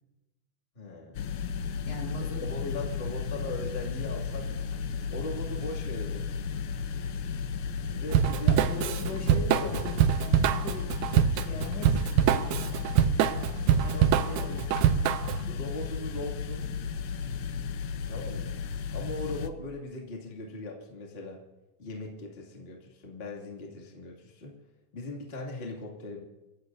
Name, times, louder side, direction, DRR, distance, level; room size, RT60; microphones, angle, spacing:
voice 1, 0.8-1.2 2.4-4.7 5.1-6.3 7.9-9.8 13.9-14.0 14.4-14.5 15.5-16.7 18.1-18.6 18.9-21.4 21.8-24.6 24.9-26.2, left 2 dB, 20° left, -1 dB, 2.1 m, -40 dB
sound 1, 1.1-19.5, left 6 dB, 70° left, 1.9 m, -34 dB
voice 2, 1.8-3.2 8.4-11.0 11.3-13.0 13.8-15.0, left 2 dB, 50° left, 0 dB, 3.3 m, -40 dB
Drum kit / Drum, 8.1-15.4, right 9 dB, 80° right, 1.6 m, -24 dB
27.5 x 14.5 x 2.7 m, 1.1 s
omnidirectional pair, 4.1 m